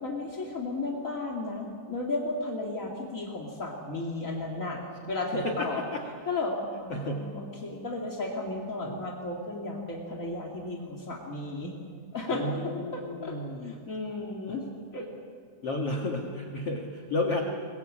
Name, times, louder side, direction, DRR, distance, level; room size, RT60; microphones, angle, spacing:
voice 1, 0.0-5.8 6.2-11.7 12.1-12.5 12.9-13.4 13.6-14.6 14.9-15.1, left 2 dB, 45° left, -1 dB, 1.0 m, -34 dB
voice 2, 5.3-6.0 6.9-7.3 8.8-8.9 12.3-13.7 15.6-17.4, left 2 dB, 75° left, 2 dB, 1.3 m, -32 dB
22.5 x 21.5 x 8.7 m, 2.1 s
omnidirectional pair, 5.6 m